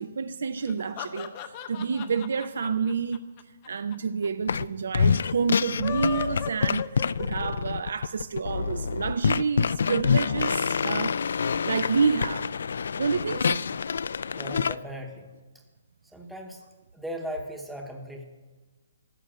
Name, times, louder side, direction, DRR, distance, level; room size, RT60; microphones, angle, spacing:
voice 1, 0.0-3.2 3.7-11.2 11.6-12.5 13.0-13.7, right 5 dB, 65° right, 0.5 m, -29 dB
sound 1, 0.6-4.0 4.2-4.3 4.5-4.6 5.6-7.7, left 10 dB, 20° left, 0.7 m, -37 dB
sound 2, 4.5-4.7 4.9-14.8, left 6 dB, 60° left, 0.3 m, -26 dB
voice 2, 14.3-15.3 16.1-16.6 16.9-18.2, equal, ahead, 0.9 m, -37 dB
14.0 x 8.0 x 8.7 m
hypercardioid pair, 175°, 0 cm